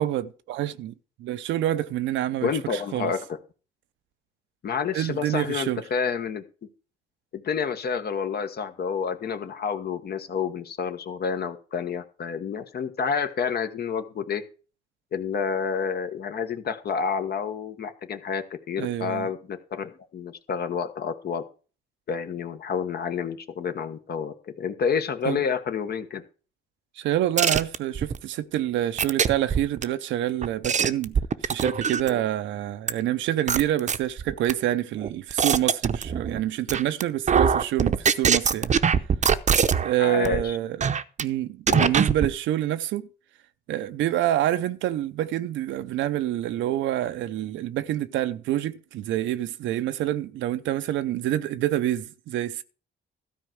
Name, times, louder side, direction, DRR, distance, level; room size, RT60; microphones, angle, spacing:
voice 1, 0.0-3.1 4.9-5.8 18.8-19.3 25.2-25.4 27.0-38.7 39.8-40.8 41.2-43.1 43.7-52.6, right 12 dB, 80° right, 0.7 m, -27 dB
voice 2, 2.4-3.4 4.6-6.4 7.3-14.4 15.1-21.4 22.1-26.2 40.0-40.6 41.7-41.9, left 6 dB, 55° left, 1.2 m, -29 dB
sound 1, 27.4-28.2 29.0-29.8 30.4-32.2 32.9-33.0 33.5-34.5 35.0-36.4 36.7-37.0 37.3-39.9 40.2-40.4 40.8-41.2 41.7-42.3, right 7 dB, 40° right, 0.7 m, -22 dB
13.0 x 4.5 x 7.8 m
cardioid pair, 80°, 19 cm